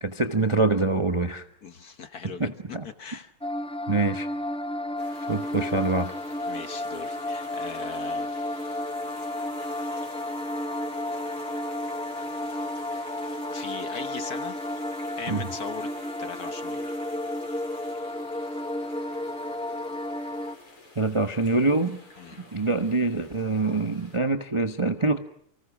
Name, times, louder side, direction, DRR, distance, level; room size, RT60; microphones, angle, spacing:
voice 1, 0.0-1.4 2.4-2.8 3.9-4.3 5.3-6.1 15.3-15.5 21.0-22.0 22.5-25.2, right 3 dB, 20° right, 8 dB, 0.7 m, -25 dB
voice 2, 1.6-3.3 6.5-8.3 13.5-14.7 15.2-15.9 16.2-17.0 22.2-22.4, left 5 dB, 50° left, 10 dB, 1.5 m, -39 dB
sound 1, 3.4-20.6, left 1 dB, 5° left, 0.4 m, -32 dB
sound 2, 5.0-24.2, left 2 dB, 85° left, 7.2 m, -49 dB
29.5 x 25.5 x 6.1 m, 0.69 s
omnidirectional pair, 2.4 m